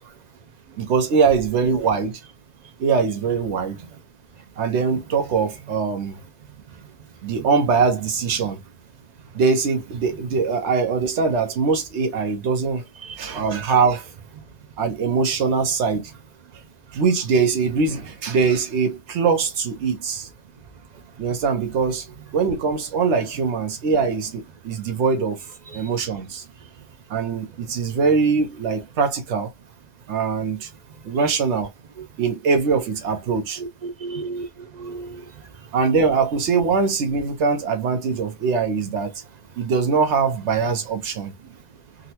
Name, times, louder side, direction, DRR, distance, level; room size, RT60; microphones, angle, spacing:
voice 1, 0.8-2.2 2.8-3.8 4.6-6.2 7.2-8.6 9.3-12.8 13.2-14.1 14.8-16.1 16.9-20.3 21.2-22.1 22.3-25.4 25.7-26.4 27.1-29.5 30.1-30.7 31.0-31.7 32.2-33.6 35.7-39.1 39.6-41.3, right 5 dB, 85° right, 1.0 m, -22 dB
voice 2, 13.0-13.4 16.9-17.0 20.9-21.0 25.7-25.9 26.6-26.7 27.9-28.0 30.9-31.0 32.0-32.1 33.6-35.8 41.4-41.5, right 4 dB, 55° right, 0.5 m, -36 dB
3.7 x 2.1 x 2.7 m
omnidirectional pair, 1.1 m